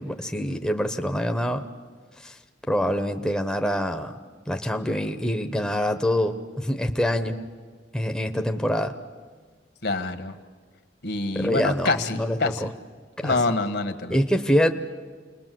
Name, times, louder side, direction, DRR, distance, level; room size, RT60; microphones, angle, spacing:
voice 1, 0.0-1.6 2.2-2.4 2.7-4.2 4.5-7.4 7.9-8.9 11.3-12.7 13.2-13.4 14.1-14.7, equal, 5° left, 5 dB, 0.9 m, -25 dB
voice 2, 9.8-10.3 11.0-12.6 13.2-14.2, left 3 dB, 65° left, 8 dB, 1.6 m, -26 dB
28.5 x 20.5 x 7.7 m, 1.5 s
head